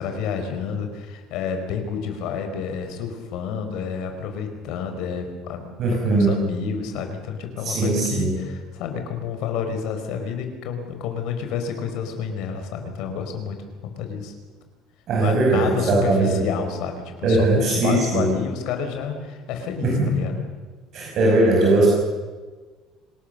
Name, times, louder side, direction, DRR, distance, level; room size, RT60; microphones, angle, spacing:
voice 1, 0.0-14.3 15.2-20.4, left 6 dB, 65° left, 6 dB, 4.5 m, -29 dB
voice 2, 5.8-6.4 7.6-8.4 15.1-16.3 17.2-18.3 19.8-20.2 20.9-21.9, right 2 dB, 45° right, -2 dB, 5.8 m, -19 dB
26.5 x 18.5 x 6.8 m, 1.4 s
cardioid pair, 155°, 0 cm